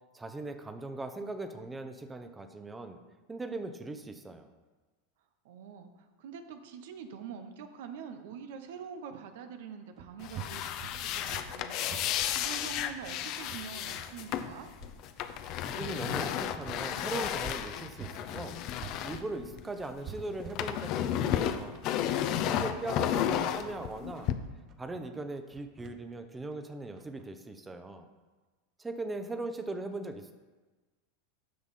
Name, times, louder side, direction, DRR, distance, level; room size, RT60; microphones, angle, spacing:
voice 1, 0.1-3.0 3.3-4.5 15.6-18.6 19.0-21.8 22.4-24.3 24.8-28.1 28.8-30.3, right 2 dB, 15° right, 8 dB, 0.8 m, -39 dB
voice 2, 5.4-14.7 22.2-22.9, right 7 dB, 70° right, 8 dB, 0.8 m, -45 dB
sound 1, 10.0-18.2 18.5-27.3, right 8 dB, 40° right, 0.8 m, -49 dB
sound 2, 10.2-20.0 20.3-24.3, left 10 dB, 50° left, 0.6 m, -33 dB
9.4 x 6.0 x 4.2 m, 1.3 s
hypercardioid pair, 105°, 0 cm